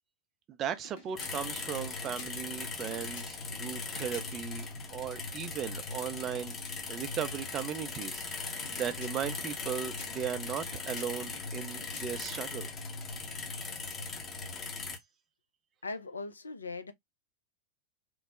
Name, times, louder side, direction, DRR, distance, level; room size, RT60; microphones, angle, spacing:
voice 1, 0.5-4.7 4.9-6.6 6.9-12.7, right 9 dB, 30° right, 0.4 m, -37 dB
sound 1, 0.7-4.6 8.5-12.4, left 3 dB, 50° left, 0.9 m, -53 dB
sound 2, 1.2-15.0, left 4 dB, 25° left, 0.7 m, -39 dB
voice 2, 15.8-16.9, left 3 dB, 75° left, 0.3 m, -39 dB
3.0 x 2.0 x 2.3 m
figure-of-eight pair, 90°, 0 cm